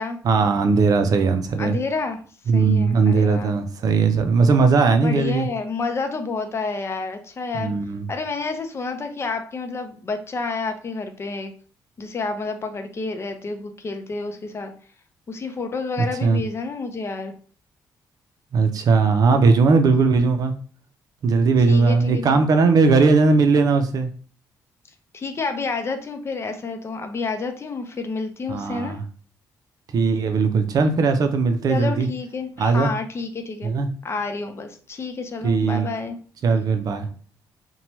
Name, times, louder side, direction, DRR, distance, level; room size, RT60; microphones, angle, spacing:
voice 1, 0.2-1.8 2.5-5.5 7.6-8.1 16.0-16.4 18.5-20.5 21.2-24.1 28.5-29.0 29.9-32.1 32.6-32.9 33.6-33.9 35.4-35.9 36.4-37.1, right 4 dB, 55° right, 7 dB, 0.5 m, -18 dB
voice 2, 1.6-2.2 2.5-3.5 5.0-7.7 8.1-11.5 12.0-14.7 15.3-17.3 21.7-22.4 25.1-29.0 31.7-33.7 34.0-36.2, left 4 dB, 35° left, 6 dB, 0.5 m, -29 dB
2.8 x 2.2 x 3.0 m, 0.42 s
cardioid pair, 85°, 7 cm